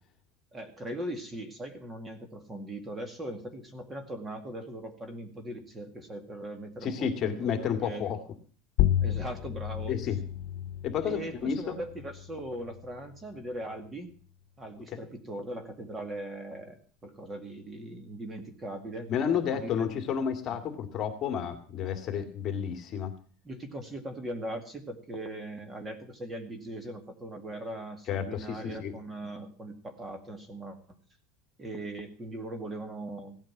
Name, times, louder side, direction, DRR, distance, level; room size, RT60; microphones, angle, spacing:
voice 1, 0.5-8.1 9.0-10.0 11.0-14.1 14.6-19.9 20.5-20.6 23.4-30.8 31.6-33.4, right 1 dB, 15° right, 8 dB, 2.1 m, -40 dB
voice 2, 6.8-8.2 9.9-10.2 10.8-11.8 14.9-15.0 19.1-23.1 28.1-28.9, left 8 dB, 35° left, 8 dB, 2.2 m, -31 dB
sound 1, 8.8-13.9, left 12 dB, 55° left, 0.9 m, -32 dB
16.5 x 9.1 x 7.2 m, 0.42 s
supercardioid pair, 145°, 0 cm